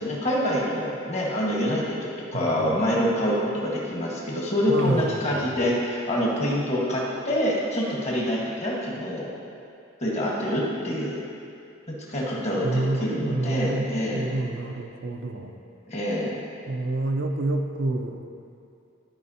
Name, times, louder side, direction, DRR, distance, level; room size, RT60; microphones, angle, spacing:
voice 1, 0.0-9.3 10.0-11.2 11.9-14.4 15.9-16.3, equal, 35° left, -4 dB, 1.3 m, -26 dB
voice 2, 2.3-2.6 4.7-5.4 12.6-15.5 16.7-18.2, right 2 dB, 65° right, 4 dB, 0.6 m, -28 dB
12.5 x 5.1 x 2.8 m, 2.5 s
head